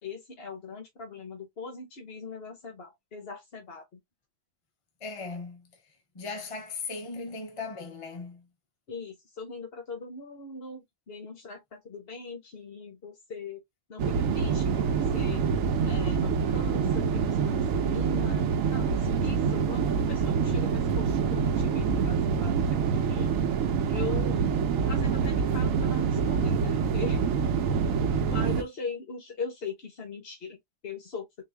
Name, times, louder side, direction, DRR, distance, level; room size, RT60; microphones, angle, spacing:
voice 1, 0.0-4.0 8.9-13.6 13.9-15.4 15.8-23.3 23.9-24.4 24.8-27.2 28.3-31.4, left 4 dB, 50° left, 1.1 m, -40 dB
voice 2, 5.0-5.8 6.1-8.5, left 4 dB, 35° left, 0.6 m, -38 dB
sound 1, 14.0-28.6, right 6 dB, 90° right, 1.0 m, -26 dB
3.9 x 2.6 x 3.3 m
omnidirectional pair, 1.4 m